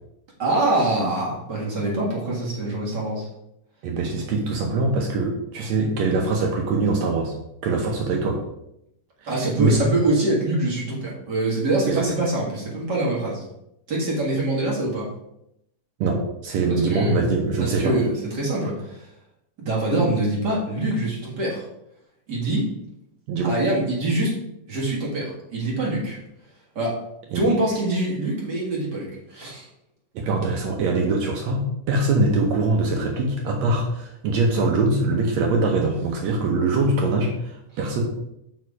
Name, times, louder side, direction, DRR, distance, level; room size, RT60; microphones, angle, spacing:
voice 1, 0.4-3.3 9.3-13.4 13.9-15.1 16.7-17.2 17.6-19.1 19.6-21.7 22.3-22.7 23.4-24.3 24.7-26.2 26.8-27.0 27.3-29.7, right 2 dB, 40° right, -4 dB, 1.8 m, -24 dB
voice 2, 3.8-7.3 7.6-8.4 9.6-9.9 11.9-12.0 16.0-18.0 23.3-23.5 27.3-27.5 30.2-38.0, right 3 dB, 70° right, 1 dB, 1.8 m, -23 dB
6.3 x 5.1 x 4.7 m, 0.82 s
omnidirectional pair, 3.7 m